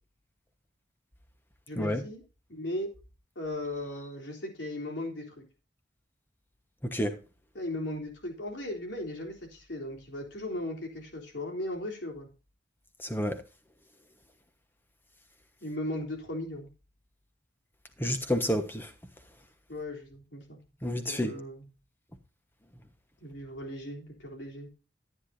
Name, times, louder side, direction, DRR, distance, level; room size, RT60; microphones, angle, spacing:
voice 1, 1.7-2.2 2.5-2.9 3.4-5.4 7.5-12.3 15.6-16.7 19.7-20.6 21.1-21.7 23.2-24.7, left 1 dB, 70° left, 3.7 m, -37 dB
voice 2, 13.0-13.4 18.0-18.9 20.8-21.3, equal, 10° left, 1.3 m, -29 dB
14.0 x 9.9 x 2.7 m
head